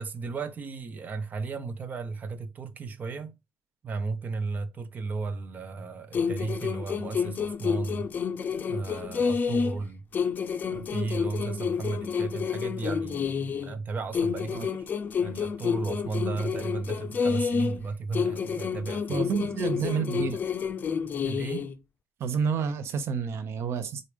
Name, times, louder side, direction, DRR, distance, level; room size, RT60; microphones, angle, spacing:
voice 1, 0.0-3.3 3.8-8.1 8.7-10.0 10.7-14.9 15.2-19.3 21.2-21.7, right 4 dB, 40° right, 0.9 m, -34 dB
sound 1, 6.1-9.8 10.1-13.8 14.1-17.8 18.1-21.8, left 6 dB, 45° left, 0.7 m, -29 dB
voice 2, 19.1-20.4 22.2-24.0, right 6 dB, 75° right, 0.8 m, -29 dB
4.9 x 4.1 x 5.1 m
cardioid pair, 145°, 4 cm